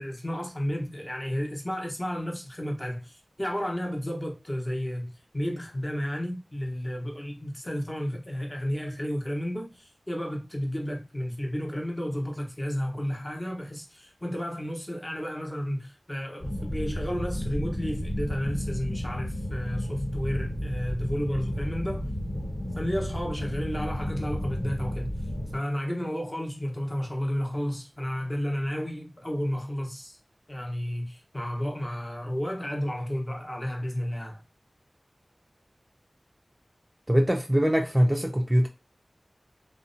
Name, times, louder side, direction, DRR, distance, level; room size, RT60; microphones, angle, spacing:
voice 1, 0.0-22.1 22.8-25.2 25.5-30.2 30.5-34.4, equal, 25° left, 0.8 m, -32 dB
sound 1, 16.4-25.6, equal, 55° left, 1.3 m, -32 dB
voice 2, 37.1-38.7, equal, 15° right, 0.4 m, -22 dB
2.6 x 2.1 x 2.6 m
wide cardioid pair, 50°, 0 cm